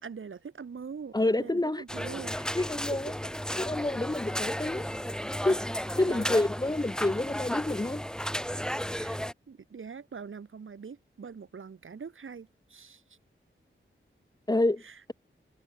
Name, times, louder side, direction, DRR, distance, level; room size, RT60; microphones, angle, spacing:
voice 1, 0.0-2.4 4.8-5.0 6.0-6.4 8.9-9.2 9.5-13.0 14.8-15.0, right 6 dB, 75° right, 2.8 m, -43 dB
voice 2, 1.1-1.8 2.5-3.1 3.6-4.9 5.4-5.7 6.0-8.0 14.5-14.8, left 2 dB, 20° left, 0.9 m, -28 dB
sound 1, 1.9-9.3, equal, 5° left, 4.5 m, -34 dB
wide cardioid pair, 65°, 21 cm